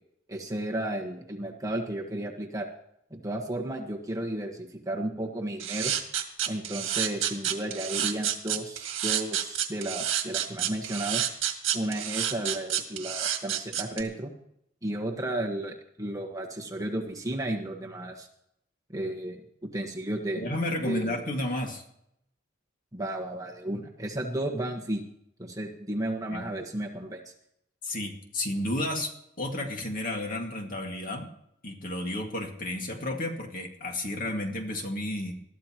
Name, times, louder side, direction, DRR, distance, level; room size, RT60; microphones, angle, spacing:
voice 1, 0.3-2.7 3.1-5.9 6.5-11.2 11.7-14.3 14.8-18.3 18.9-20.4 20.8-21.2 22.9-25.0 25.4-27.3, right 1 dB, 15° right, 0 dB, 1.5 m, -33 dB
sound 1, 5.6-14.0, right 10 dB, 75° right, 1.8 m, -29 dB
voice 2, 20.4-21.8 26.3-26.5 27.8-29.1 29.4-31.3 31.6-35.3, left 1 dB, 45° left, 2 dB, 2.1 m, -32 dB
21.0 x 13.5 x 3.0 m, 0.76 s
head